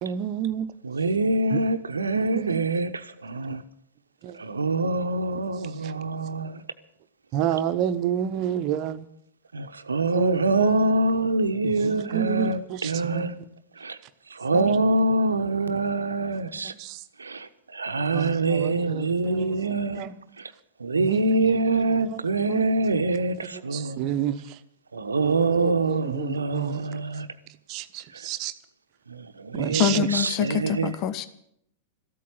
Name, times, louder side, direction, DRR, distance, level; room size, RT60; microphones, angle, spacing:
voice 1, 0.0-0.7 1.5-1.6 2.1-2.6 3.5-3.6 4.2-4.4 7.3-9.1 10.1-10.9 11.6-13.3 14.5-14.9 16.6-17.0 18.1-19.7 19.9-20.1 20.9-21.8 22.1-22.2 22.5-22.8 23.5-24.4 25.2-26.8 27.7-28.5 29.5-30.0, right 10 dB, 40° right, 12 dB, 0.9 m, -30 dB
voice 2, 0.8-3.6 4.4-6.6 9.5-13.4 13.8-14.0 14.3-16.7 17.2-20.0 20.4-20.5 20.8-24.1 24.9-27.3 29.1-30.9, right 2 dB, 75° right, 11 dB, 0.9 m, -25 dB
voice 3, 29.8-31.3, left 8 dB, 40° left, 14 dB, 0.8 m, -25 dB
14.0 x 8.6 x 9.7 m, 0.73 s
figure-of-eight pair, 95°, 0 cm